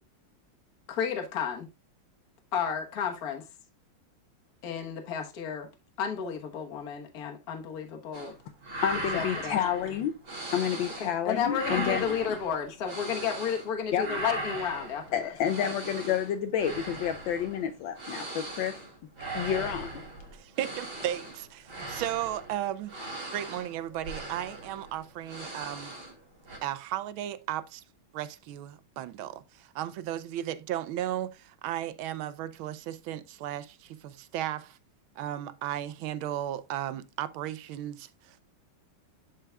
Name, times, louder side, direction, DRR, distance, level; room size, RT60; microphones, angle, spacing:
voice 1, 0.9-1.7 2.5-3.4 4.6-5.7 6.0-8.3 9.1-9.6 11.0-15.3 15.6-15.7, left 7 dB, 50° left, 1.5 m, -32 dB
sound 1, 8.1-8.4 8.6-11.2 11.5-13.7 14.0-26.2 26.5-26.6, right 2 dB, 55° right, 3.4 m, -39 dB
voice 2, 8.8-10.1 10.5-12.4 13.9-14.1 15.1-18.7 19.3-20.0, left 9 dB, 75° left, 1.3 m, -29 dB
voice 3, 20.3-22.9 23.3-26.0 26.6-27.8 28.1-34.8 35.2-38.4, right 12 dB, 90° right, 1.4 m, -35 dB
11.0 x 4.7 x 2.2 m
omnidirectional pair, 2.2 m